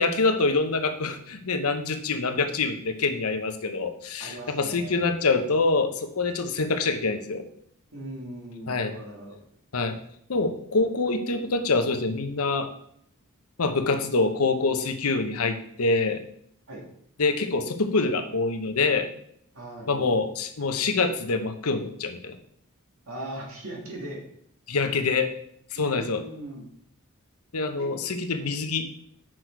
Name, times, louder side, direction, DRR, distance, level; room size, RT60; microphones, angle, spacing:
voice 1, 0.0-7.5 8.7-8.9 9.7-10.0 10.3-12.7 13.6-16.2 17.2-19.1 19.9-22.4 24.7-25.3 25.7-26.2 27.5-28.9, left 3 dB, 85° left, 7 dB, 0.9 m, -25 dB
voice 2, 4.2-5.0 7.9-9.4 16.7-16.8 19.5-20.1 23.1-24.2 25.7-26.7 27.8-27.9 28.4-28.5, right 1 dB, 75° right, -2 dB, 2.3 m, -39 dB
6.3 x 6.1 x 4.6 m, 0.69 s
head